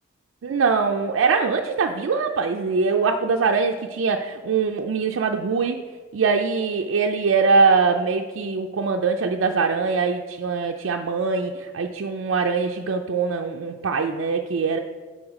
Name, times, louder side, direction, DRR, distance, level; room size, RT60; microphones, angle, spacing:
voice 1, 0.4-5.8 6.1-14.8, right 4 dB, 80° right, 2 dB, 0.4 m, -22 dB
5.4 x 4.8 x 6.3 m, 1.5 s
head